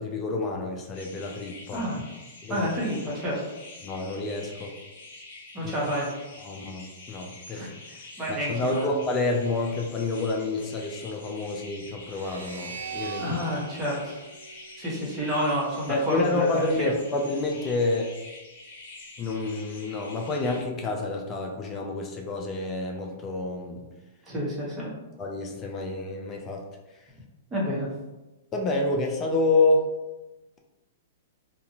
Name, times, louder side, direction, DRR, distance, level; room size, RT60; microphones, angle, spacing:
voice 1, 0.0-1.8 2.4-2.7 3.8-4.7 5.6-5.7 6.4-7.6 8.3-13.3 15.9-18.1 19.2-23.9 25.2-26.6 28.5-29.9, left 2 dB, 25° left, 1 dB, 0.4 m, -28 dB
sound 1, 0.9-20.6, left 2 dB, 60° left, 0.7 m, -47 dB
voice 2, 1.7-2.0 2.5-3.4 5.5-6.1 7.5-9.0 13.2-14.2 14.8-16.9 24.3-24.9 27.5-27.9, equal, 15° right, -5 dB, 1.0 m, -29 dB
sound 2, 12.1-15.4, right 5 dB, 90° right, 0.4 m, -40 dB
2.6 x 2.4 x 2.8 m, 1.1 s
hypercardioid pair, 130°, 0 cm